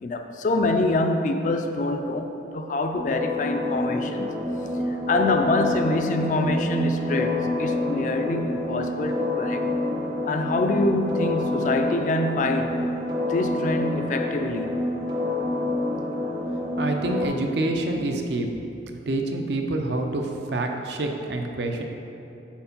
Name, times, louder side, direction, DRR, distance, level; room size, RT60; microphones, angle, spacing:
voice 1, 0.0-4.3 5.1-9.7 10.3-12.8 13.3-14.8, left 2 dB, 45° left, 6 dB, 0.3 m, -25 dB
sound 1, 2.9-17.3, left 2 dB, 25° right, 0.6 m, -28 dB
voice 2, 16.8-18.5 19.1-21.8, right 2 dB, 70° right, 3 dB, 0.5 m, -27 dB
4.5 x 4.3 x 5.3 m, 2.9 s
head